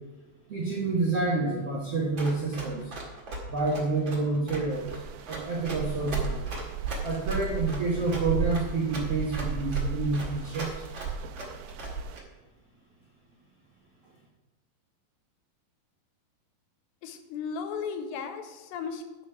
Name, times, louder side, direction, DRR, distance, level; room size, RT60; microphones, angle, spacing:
voice 1, 0.5-2.9 3.5-4.9 5.3-6.4 7.0-10.8, right 3 dB, 70° right, -4 dB, 1.4 m, -28 dB
Run, 2.2-12.2, right 2 dB, 40° right, 1.8 m, -39 dB
sound 1, 4.7-12.2, right 5 dB, 85° right, 2.8 m, -34 dB
voice 2, 17.0-19.3, left 6 dB, 85° left, 8 dB, 2.9 m, -36 dB
10.0 x 6.2 x 6.0 m, 1.1 s
omnidirectional pair, 5.0 m